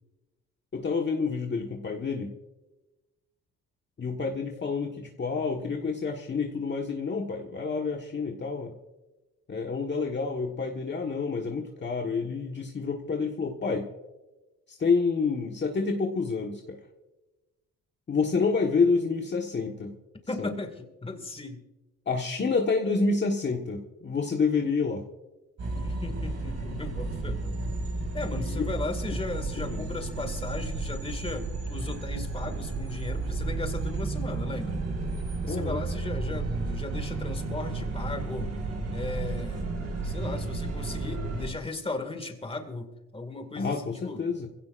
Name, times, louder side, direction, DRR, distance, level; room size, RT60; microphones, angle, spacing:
voice 1, 0.7-2.3 4.0-8.7 9.5-13.9 14.7-16.8 18.1-19.9 20.4-20.6 22.0-25.0 28.3-28.6 29.4-29.8 35.4-35.8 43.5-44.5, left 4 dB, 35° left, 1 dB, 1.5 m, -28 dB
voice 2, 20.3-21.6 25.8-27.7 28.1-34.8 35.5-38.5 38.9-39.7 40.0-44.2, left 3 dB, 20° left, 6 dB, 2.2 m, -37 dB
sound 1, 25.6-41.5, right 3 dB, 55° right, 5.5 m, -32 dB
25.0 x 16.5 x 2.6 m, 1.1 s
cardioid pair, 90°, 30 cm